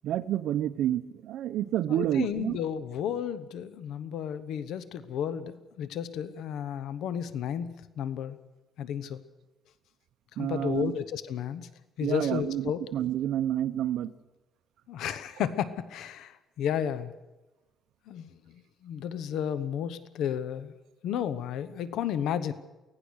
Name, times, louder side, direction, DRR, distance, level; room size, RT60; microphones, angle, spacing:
voice 1, 0.0-2.6 10.4-10.9 12.0-14.1, right 12 dB, 80° right, 11 dB, 0.9 m, -29 dB
voice 2, 1.9-8.4 8.8-9.2 10.4-11.7 12.0-12.8 14.9-17.1 18.1-18.3 18.8-20.7 21.0-22.5, left 9 dB, 80° left, 14 dB, 1.0 m, -32 dB
24.0 x 17.5 x 6.4 m, 1.1 s
cardioid pair, 125°, 0 cm